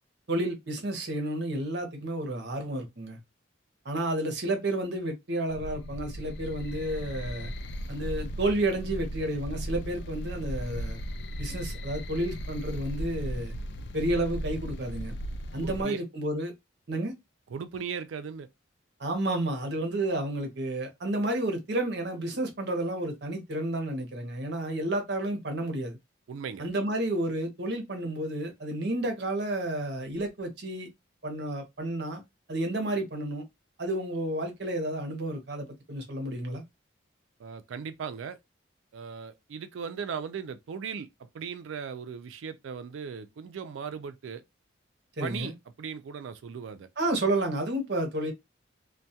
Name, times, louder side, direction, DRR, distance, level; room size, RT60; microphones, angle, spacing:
voice 1, 0.3-3.2 3.8-7.5 7.9-11.0 11.4-13.5 13.9-15.1 15.5-16.5 16.9-17.1 19.0-26.0 26.6-30.9 31.2-32.2 32.5-33.4 33.8-36.6 45.2-45.5 47.0-48.3, right 1 dB, 55° right, 0.7 m, -31 dB
sound 1, 5.5-15.8, equal, 55° left, 0.3 m, -36 dB
voice 2, 15.6-16.0 17.5-18.5 26.3-26.7 37.4-38.4 38.9-44.4 45.2-46.9, right 6 dB, 75° right, 0.4 m, -38 dB
2.3 x 2.2 x 2.7 m
head